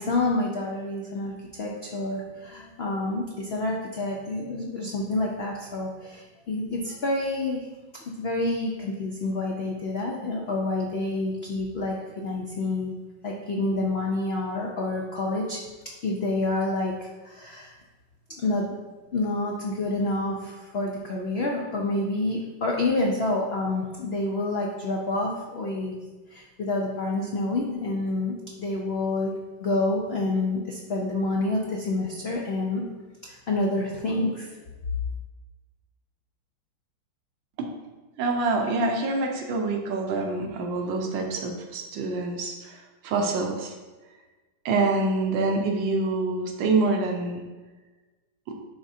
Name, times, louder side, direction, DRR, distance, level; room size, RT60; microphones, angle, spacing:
voice 1, 0.0-7.7 8.0-12.9 13.2-15.6 16.0-17.7 18.3-18.7 19.1-26.0 26.3-29.3 29.6-32.9 33.2-34.5, left 2 dB, 70° left, -1 dB, 0.5 m, -28 dB
voice 2, 38.2-43.7 44.6-47.4 48.5-48.6, right 3 dB, 85° right, 2 dB, 1.5 m, -26 dB
9.9 x 3.6 x 2.7 m, 1.2 s
omnidirectional pair, 2.0 m